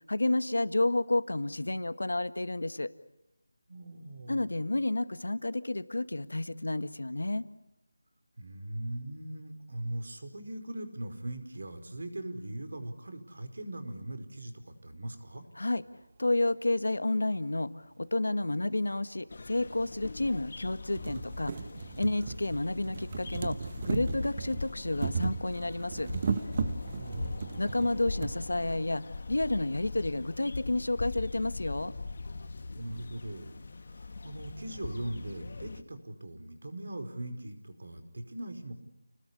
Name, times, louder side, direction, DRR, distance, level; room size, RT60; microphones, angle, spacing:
voice 1, 0.1-2.9 4.3-7.4 15.5-15.8 16.2-21.5 22.0-23.6 23.8-26.1 27.6-31.9, left 2 dB, 85° left, 12 dB, 1.7 m, -30 dB
voice 2, 3.7-4.4 8.4-15.4 26.9-27.6 32.8-33.5 33.9-38.7, right 1 dB, 70° right, 8 dB, 5.0 m, -40 dB
sound 1, 18.8-18.9 19.8-19.9 20.4-20.5 20.8-28.3 29.3-29.4 29.6-29.7, right 5 dB, 30° right, 1.3 m, -36 dB
sound 2, 19.3-35.8, left 3 dB, 50° left, 1.7 m, -41 dB
29.5 x 20.0 x 8.4 m, 0.86 s
figure-of-eight pair, 170°, 0 cm